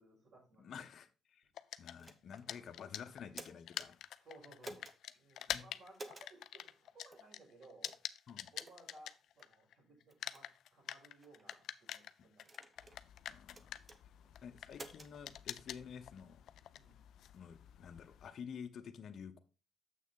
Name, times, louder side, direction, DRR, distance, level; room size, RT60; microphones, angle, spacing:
voice 1, 0.0-0.8 2.5-2.6 4.2-4.9 5.1-7.9 8.5-12.9 14.1-14.4 16.7-17.0, right 2 dB, 60° right, 5.3 m, -61 dB
voice 2, 0.6-1.4 1.8-4.0 4.6-4.7 5.5-5.6 8.3-8.5 13.3-13.8 14.4-16.4 17.3-19.4, left 7 dB, 60° left, 1.0 m, -50 dB
sound 1, 1.6-9.7 10.0-18.3, left 11 dB, 75° left, 0.4 m, -46 dB
sound 2, 2.0-2.5 3.1-3.9 4.6-5.0 5.9-6.3 7.1-7.3 7.8-8.1 8.6-8.8 9.4-9.5 10.1-10.4 11.2-11.6 12.4-13.0 13.5-14.0 14.7-15.1, right 2 dB, 25° right, 0.9 m, -52 dB
7.5 x 6.2 x 3.8 m
cardioid pair, 90°, 0 cm